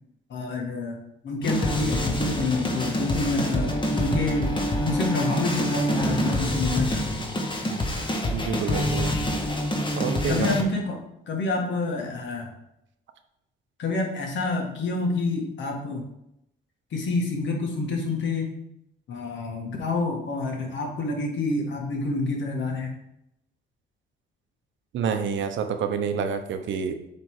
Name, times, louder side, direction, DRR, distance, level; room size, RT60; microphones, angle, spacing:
voice 1, 0.3-1.0 1.2-7.3 10.3-11.0 11.3-12.5 13.8-16.0 16.9-18.6 19.1-23.0, left 3 dB, 70° left, 1 dB, 1.8 m, -28 dB
sound 1, 1.4-10.6, left 1 dB, 25° left, 1.3 m, -26 dB
voice 2, 8.3-9.2 10.0-10.5 24.9-26.9, right 7 dB, 75° right, 7 dB, 0.9 m, -28 dB
8.0 x 3.5 x 4.9 m, 0.82 s
cardioid pair, 90°, 20 cm